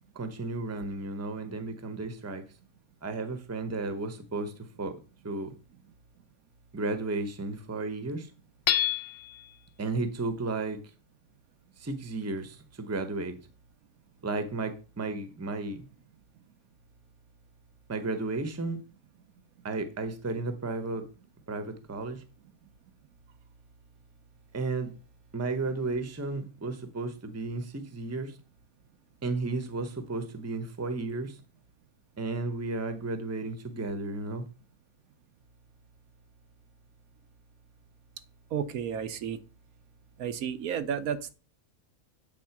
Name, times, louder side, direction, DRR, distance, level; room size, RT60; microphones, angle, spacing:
voice 1, 0.1-2.4 3.0-4.5 4.8-4.9 5.2-5.5 6.7-8.3 9.8-10.8 11.8-13.4 14.2-15.9 17.9-18.8 19.6-21.1 21.5-22.2 24.5-24.9 25.3-28.3 29.2-31.4 32.2-34.4, right 3 dB, 15° right, 0.7 m, -33 dB
Hammer / Chink clink, 8.7-9.5, left 11 dB, 65° left, 0.6 m, -27 dB
voice 2, 38.5-39.4 40.2-41.3, right 8 dB, 80° right, 1.2 m, -32 dB
8.5 x 3.7 x 5.8 m
omnidirectional pair, 1.5 m